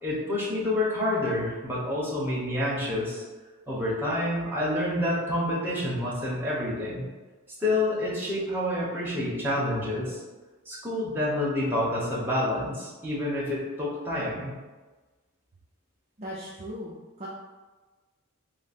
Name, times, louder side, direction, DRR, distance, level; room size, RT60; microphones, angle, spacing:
voice 1, 0.0-3.2 3.7-7.1 7.6-10.2 10.7-14.5, left 1 dB, 10° right, -7 dB, 0.9 m, -28 dB
voice 2, 16.2-17.3, equal, 30° right, -6 dB, 0.4 m, -38 dB
3.5 x 2.1 x 4.1 m, 1.3 s
head